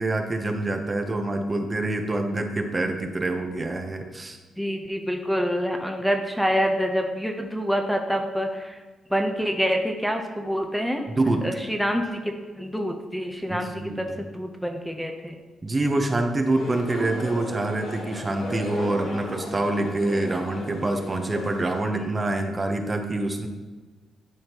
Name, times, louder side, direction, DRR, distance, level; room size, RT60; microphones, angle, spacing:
voice 1, 0.0-4.4 11.2-11.5 13.5-14.2 15.6-23.5, right 2 dB, 30° right, 4 dB, 0.8 m, -26 dB
voice 2, 4.6-8.8 9.1-11.1 11.4-15.4, equal, ahead, 3 dB, 0.8 m, -26 dB
sound 1, 16.5-21.8, left 1 dB, 75° left, 2.1 m, -35 dB
11.0 x 4.3 x 2.9 m, 1.3 s
cardioid pair, 75°, 0 cm